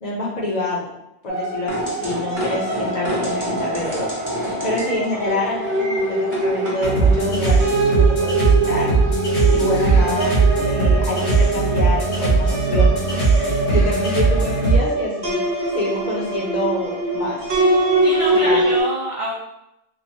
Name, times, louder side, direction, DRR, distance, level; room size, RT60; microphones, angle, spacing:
voice 1, 0.0-0.9 1.2-7.6 8.1-10.4 10.7-15.4 15.7-17.4 18.3-18.6, left 1 dB, 50° left, -4 dB, 0.6 m, -27 dB
sound 1, 1.3-18.8, right 2 dB, 85° right, 1.0 m, -23 dB
sound 2, 1.7-7.2, right 1 dB, 20° right, 0.8 m, -29 dB
sound 3, 6.8-14.8, right 3 dB, 85° left, 1.2 m, -18 dB
voice 2, 18.0-19.3, right 2 dB, 60° right, -6 dB, 0.3 m, -26 dB
3.2 x 2.1 x 2.6 m, 0.86 s
omnidirectional pair, 1.1 m